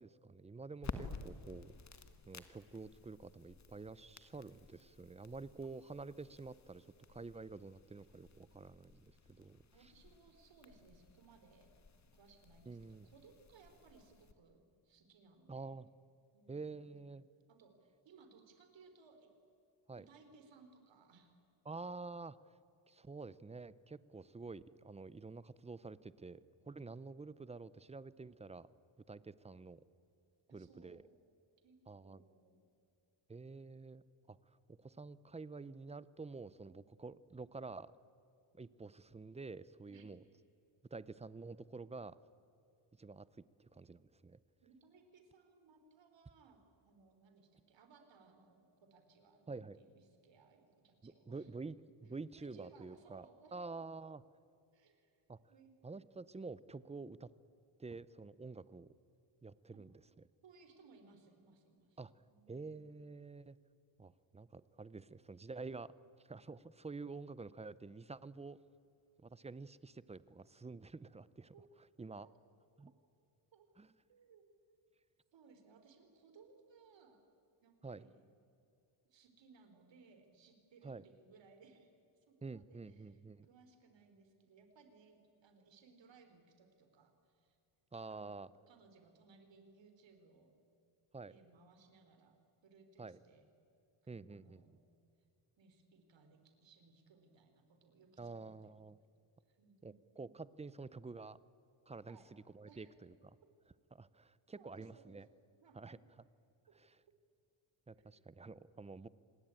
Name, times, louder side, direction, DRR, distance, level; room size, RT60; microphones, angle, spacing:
voice 1, 0.0-1.7 2.3-9.6 12.7-13.1 15.5-15.9 16.5-17.3 19.9-20.0 21.7-22.4 22.9-28.7 29.1-29.8 30.5-31.0 31.9-32.2 33.3-34.0 34.3-37.9 38.5-40.2 40.9-42.2 43.0-44.4 49.5-49.8 51.0-53.3 53.5-54.2 55.3-55.4 55.8-57.3 57.8-58.9 59.4-59.9 62.0-63.6 64.0-65.9 66.2-68.6 69.2-71.5 72.0-72.3 72.8-72.9 73.8-73.9 77.8-78.0 80.8-81.0 82.4-83.5 87.9-88.5 91.1-91.4 93.0-93.2 94.1-94.6 98.2-99.0 99.8-101.4 101.9-103.4 103.9-105.3 105.8-106.0 106.8-107.0 107.9-109.1, right 3 dB, 15° right, 18 dB, 0.5 m, -49 dB
sound 1, 0.8-14.3, left 4 dB, 35° left, 1.6 m, -53 dB
voice 2, 9.7-11.8 12.1-15.8 16.3-16.9 17.5-19.3 19.9-21.4 30.5-31.2 31.6-31.8 32.0-32.7 39.9-40.1 44.6-51.5 52.3-53.8 54.7-55.2 55.5-55.7 59.7-59.8 60.4-62.0 62.3-62.7 71.5-71.7 72.2-72.3 73.5-73.7 74.1-74.8 75.3-77.3 77.6-78.3 79.0-81.9 82.3-87.6 88.0-88.3 88.7-90.6 91.3-93.5 94.0-94.8 95.6-98.7 99.5-99.9 102.1-102.3 102.6-102.9 104.5-105.2 105.6-106.0 106.7-106.8 107.9-108.2, right 4 dB, 60° right, 6 dB, 3.9 m, -64 dB
27.0 x 19.5 x 9.1 m, 2.6 s
cardioid pair, 135°, 50 cm